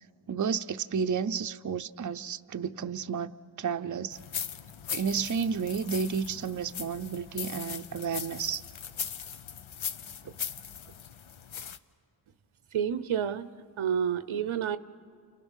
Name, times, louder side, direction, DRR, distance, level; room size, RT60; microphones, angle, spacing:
voice 1, 0.3-3.3 3.6-4.2 4.9-8.6 10.2-10.3, right 6 dB, 40° right, 0.7 m, -31 dB
sound 1, 4.1-11.8, left 8 dB, 75° left, 0.9 m, -39 dB
voice 2, 12.7-13.5 13.8-14.8, right 8 dB, 90° right, 0.9 m, -29 dB
30.0 x 29.0 x 6.4 m
wide cardioid pair, 70°, 47 cm